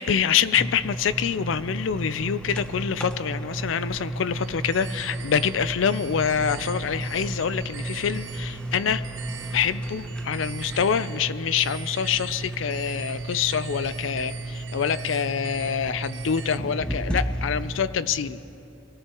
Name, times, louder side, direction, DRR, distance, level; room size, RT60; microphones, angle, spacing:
voice 1, 0.0-9.1 9.5-18.4, left 7 dB, 80° left, 15 dB, 0.5 m, -26 dB
sound 1, 0.6-17.8, right 1 dB, 5° left, 0.7 m, -33 dB
sound 2, 4.4-16.6, right 7 dB, 70° right, 0.6 m, -43 dB
24.0 x 17.5 x 3.0 m, 3.0 s
head